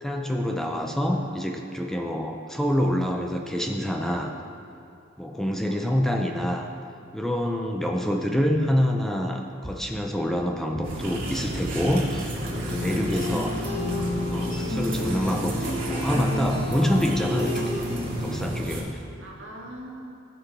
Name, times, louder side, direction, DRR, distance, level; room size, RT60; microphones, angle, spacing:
voice 1, 0.0-4.3 5.2-6.7 7.1-13.6 14.3-17.9 18.2-19.0, equal, ahead, 2 dB, 0.5 m, -26 dB
voice 2, 1.2-2.1 5.7-5.9 13.5-13.9 19.2-20.2, right 1 dB, 85° right, -2 dB, 1.8 m, -44 dB
sound 1, 9.6-10.1 10.7-11.2 11.9-12.3 12.9-13.3 14.0-14.4 15.0-15.4 16.1-16.4, equal, 20° right, 0.9 m, -41 dB
sound 2, 10.8-18.8, right 1 dB, 45° right, 2.2 m, -32 dB
sound 3, 12.5-18.2, left 2 dB, 25° left, 2.1 m, -31 dB
15.0 x 6.2 x 4.8 m, 2.5 s
head